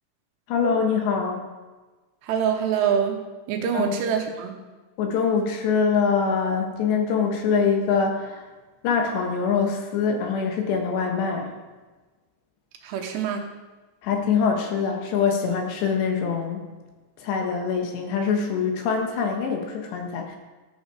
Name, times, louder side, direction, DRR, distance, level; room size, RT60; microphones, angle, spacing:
voice 1, 0.5-1.5 3.7-4.0 5.0-8.4 8.8-11.5 14.0-16.6 17.2-20.4, left 6 dB, 70° left, 3 dB, 3.4 m, -24 dB
voice 2, 2.2-3.2 3.5-4.6 12.8-13.5, right 8 dB, 75° right, 3 dB, 2.9 m, -25 dB
14.5 x 7.7 x 4.8 m, 1.2 s
omnidirectional pair, 5.3 m